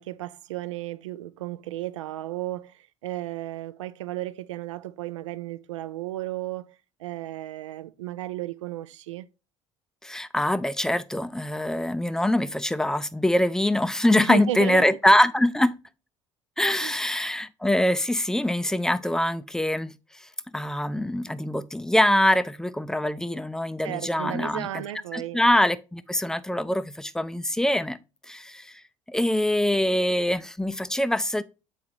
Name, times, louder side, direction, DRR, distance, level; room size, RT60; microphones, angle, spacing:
voice 1, 0.0-9.3 14.1-15.0 16.8-16.9 23.8-25.4, right 14 dB, 70° right, 0.4 m, -34 dB
voice 2, 10.0-15.7 16.6-19.9 20.5-24.8 25.1-28.0 28.3-28.8 29.1-31.4, left 1 dB, 5° left, 0.4 m, -24 dB
8.0 x 4.7 x 2.6 m
figure-of-eight pair, 55°, 16 cm